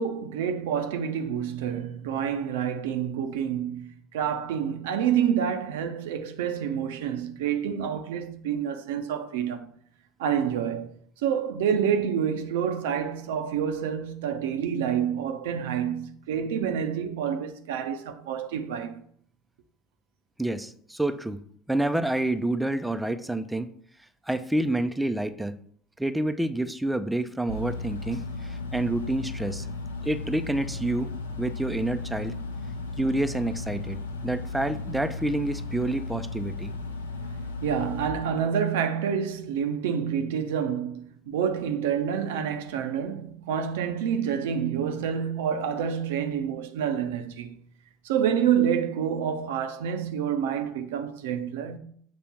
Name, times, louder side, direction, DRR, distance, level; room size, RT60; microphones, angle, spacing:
voice 1, 0.0-9.7 10.2-10.9 11.2-19.0 37.6-47.6 48.0-51.8, right 8 dB, 70° right, 0.7 m, -28 dB
voice 2, 20.4-21.4 21.7-23.7 24.3-25.6 26.0-29.7 30.0-31.1 31.4-32.3 33.0-36.7, right 1 dB, 5° right, 0.5 m, -28 dB
sound 1, 27.5-38.1, left 3 dB, 85° left, 0.8 m, -35 dB
7.4 x 3.4 x 5.8 m
figure-of-eight pair, 70°, 0 cm